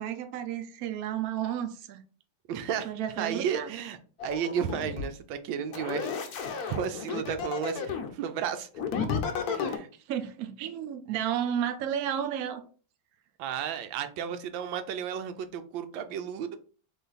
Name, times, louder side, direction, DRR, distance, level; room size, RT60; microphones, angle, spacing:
voice 1, 0.0-2.0 2.8-3.7 10.1-12.6, right 9 dB, 70° right, 0.9 m, -32 dB
voice 2, 2.5-2.9 3.2-4.0 4.2-8.7 9.4-9.9 13.4-16.6, right 8 dB, 85° right, 1.3 m, -33 dB
sound 1, 4.2-5.1 5.7-8.1 8.8-9.8, left 6 dB, 65° left, 1.1 m, -32 dB
4.0 x 3.1 x 4.0 m
omnidirectional pair, 2.0 m